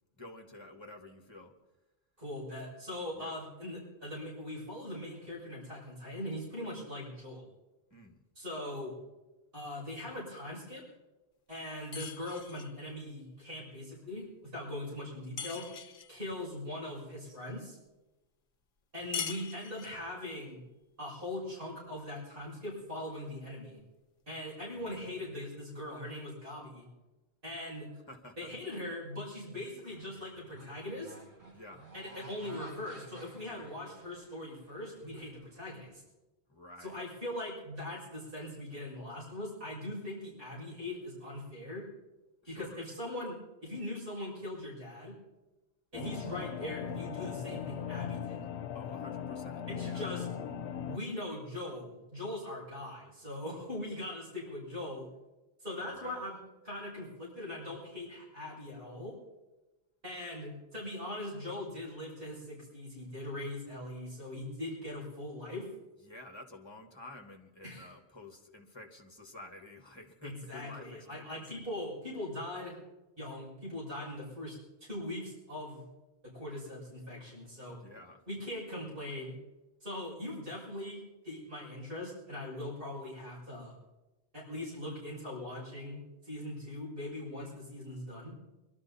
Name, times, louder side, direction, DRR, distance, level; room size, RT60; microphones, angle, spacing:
voice 1, 0.2-1.5 3.1-3.4 7.9-8.2 24.7-25.2 28.1-28.5 31.5-31.9 36.5-37.0 42.4-42.9 48.7-50.1 55.9-56.3 66.0-71.4 77.7-78.2, left 2 dB, 25° left, 3 dB, 1.6 m, -51 dB
voice 2, 2.2-7.5 8.3-9.0 9.5-10.8 11.5-15.7 16.1-17.8 18.9-20.6 21.0-23.8 24.3-26.9 27.4-27.9 28.4-31.1 31.9-35.9 36.8-41.9 42.5-45.2 45.9-48.4 49.7-50.2 50.9-55.1 55.6-56.4 56.6-59.2 60.0-65.7 67.6-67.9 70.2-72.8 73.2-75.8 76.2-77.8 78.3-79.4 79.8-83.7 84.3-88.3, left 1 dB, 55° right, -7 dB, 6.7 m, -41 dB
sound 1, 11.9-12.8 15.4-16.2 19.1-20.1, left 7 dB, 60° left, 1.0 m, -41 dB
sound 2, 29.9-35.9, right 2 dB, 80° right, 4.0 m, -54 dB
sound 3, 45.9-51.0, left 8 dB, 85° left, 1.0 m, -39 dB
23.5 x 12.5 x 4.2 m, 1.1 s
omnidirectional pair, 1.1 m